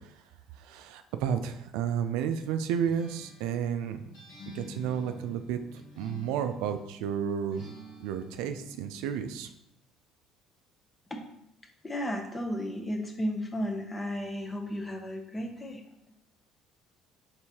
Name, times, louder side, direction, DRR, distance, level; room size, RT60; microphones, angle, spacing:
voice 1, 0.6-4.1 4.5-7.6 8.0-9.5, right 8 dB, 85° right, 8 dB, 0.3 m, -32 dB
Acoustic guitar, 2.8-6.9 7.5-9.1, left 2 dB, 80° left, 1.4 m, -48 dB
voice 2, 11.8-15.8, equal, 20° left, 5 dB, 0.7 m, -34 dB
4.6 x 3.3 x 2.8 m, 0.80 s
supercardioid pair, 90°, 0 cm